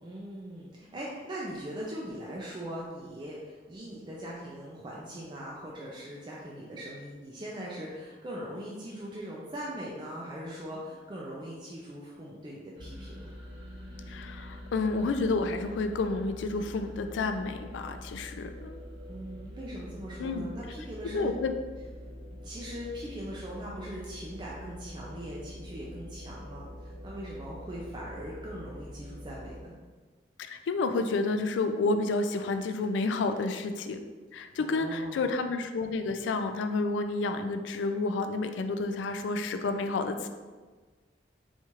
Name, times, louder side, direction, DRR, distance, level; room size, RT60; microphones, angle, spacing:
voice 1, 0.0-13.3 19.1-21.3 22.3-29.7 34.6-35.3, equal, 25° right, -5 dB, 0.4 m, -40 dB
sound 1, 12.7-29.6, equal, 70° right, 1.0 m, -45 dB
voice 2, 14.1-18.8 20.2-20.5 21.1-21.5 30.4-34.0 34.3-40.3, left 3 dB, 90° left, 8 dB, 0.3 m, -30 dB
4.3 x 2.4 x 3.0 m, 1.4 s
head